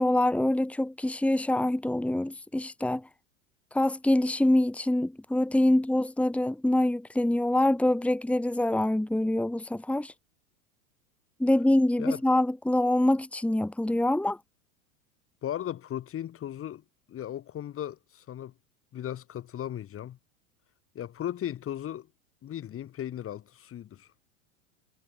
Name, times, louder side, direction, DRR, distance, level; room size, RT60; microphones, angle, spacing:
voice 1, 0.0-3.1 3.7-10.1 11.4-14.4, left 1 dB, 5° left, 2.5 m, -25 dB
voice 2, 15.4-16.8 17.1-18.5 18.9-20.2 20.9-22.1 22.4-24.1, left 11 dB, 30° left, 3.4 m, -36 dB
hypercardioid pair, 105°, 42 cm